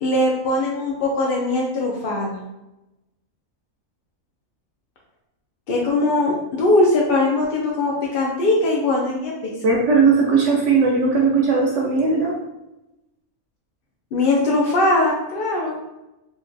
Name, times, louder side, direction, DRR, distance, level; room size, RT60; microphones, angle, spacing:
voice 1, 0.0-2.4 5.7-9.3 14.1-15.7, left 2 dB, 75° left, -3 dB, 0.5 m, -20 dB
voice 2, 9.6-12.3, right 4 dB, 65° right, -2 dB, 0.8 m, -18 dB
3.8 x 2.1 x 2.5 m, 0.95 s
omnidirectional pair, 1.5 m